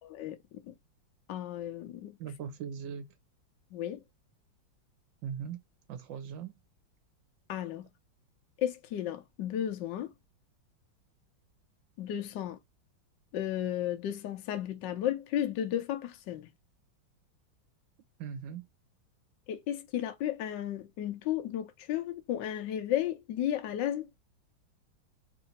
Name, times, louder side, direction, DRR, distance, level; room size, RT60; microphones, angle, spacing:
voice 1, 0.0-0.4 0.6-0.7 1.3-2.2 3.7-4.0 7.5-7.9 8.6-10.1 12.0-12.6 13.3-16.5 19.5-24.1, left 11 dB, 70° left, 1.3 m, -34 dB
voice 2, 2.2-3.1 5.2-5.6 5.9-6.6 18.2-18.7, right 7 dB, 70° right, 1.6 m, -39 dB
3.8 x 2.7 x 4.2 m
omnidirectional pair, 2.1 m